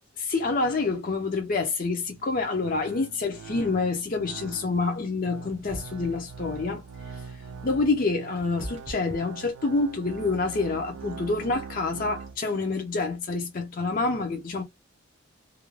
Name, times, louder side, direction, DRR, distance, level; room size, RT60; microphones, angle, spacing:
voice 1, 0.2-14.6, left 3 dB, 40° left, 0.5 m, -27 dB
sound 1, 1.9-12.4, right 6 dB, 75° right, 0.4 m, -43 dB
sound 2, 5.5-6.3 7.8-10.1, right 1 dB, 30° right, 0.7 m, -41 dB
2.4 x 2.1 x 3.1 m
head